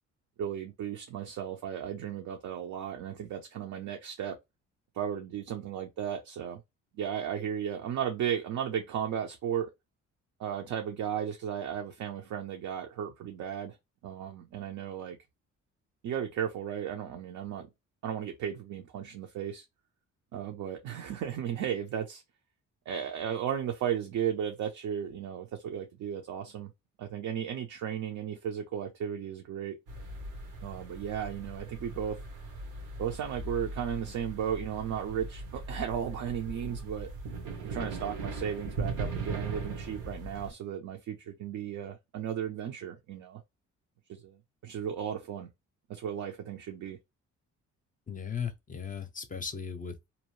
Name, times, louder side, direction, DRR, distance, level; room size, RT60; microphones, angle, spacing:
voice 1, 0.4-4.4 4.9-6.6 6.9-9.7 10.4-13.8 14.0-15.2 16.0-17.7 18.0-19.6 20.3-22.2 22.9-26.7 27.0-29.8 30.6-32.2 33.0-37.1 37.6-43.4 44.1-45.5 45.9-47.0, right 9 dB, 70° right, 0.7 m, -35 dB
sound 1, 29.9-40.5, right 3 dB, 90° right, 1.1 m, -39 dB
voice 2, 48.1-50.1, left 7 dB, 25° left, 0.5 m, -37 dB
2.7 x 2.1 x 3.1 m
cardioid pair, 90°, 30 cm